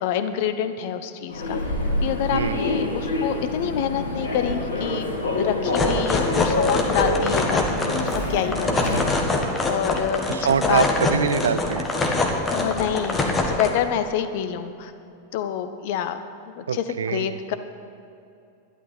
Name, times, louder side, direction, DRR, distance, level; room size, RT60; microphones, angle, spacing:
voice 1, 0.0-1.6 2.0-5.1 5.4-9.0 9.7-10.8 12.5-14.9 15.3-16.2 16.6-17.5, left 9 dB, 50° left, 10 dB, 0.9 m, -27 dB
Human voice / Subway metro underground, 1.3-9.3, left 2 dB, 70° left, 2.3 m, -27 dB
voice 2, 2.3-2.7 10.3-11.9 16.7-17.4, right 6 dB, 70° right, 13 dB, 0.5 m, -24 dB
sound 1, 5.6-13.7, left 2 dB, 15° left, 1.7 m, -24 dB
12.0 x 11.0 x 5.9 m, 2.6 s
figure-of-eight pair, 90°, 0 cm